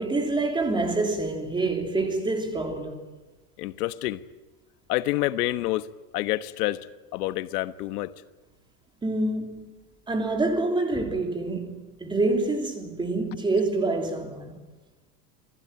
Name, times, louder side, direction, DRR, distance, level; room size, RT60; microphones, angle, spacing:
voice 1, 0.0-3.0 9.0-9.7 10.1-14.6, right 2 dB, 10° right, 3.1 m, -27 dB
voice 2, 3.6-4.2 4.9-5.9 6.1-6.9 7.1-8.1, left 16 dB, 85° left, 1.4 m, -27 dB
28.0 x 20.5 x 8.9 m
supercardioid pair, 165°, 45 cm